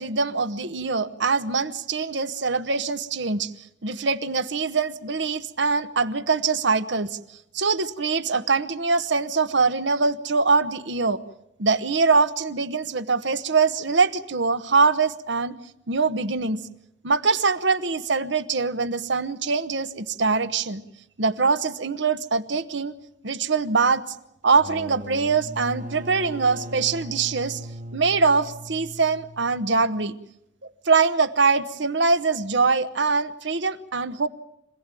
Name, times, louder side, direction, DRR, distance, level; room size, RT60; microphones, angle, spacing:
voice 1, 0.0-3.5 3.8-7.2 7.5-11.2 11.6-15.5 15.9-16.7 17.0-20.8 21.2-22.9 23.2-24.0 24.4-27.6 27.9-30.2 30.8-34.3, right 4 dB, 70° right, 12 dB, 1.1 m, -23 dB
sound 1, 24.5-30.0, right 1 dB, 45° right, 1.5 m, -39 dB
25.5 x 17.0 x 9.1 m, 0.83 s
head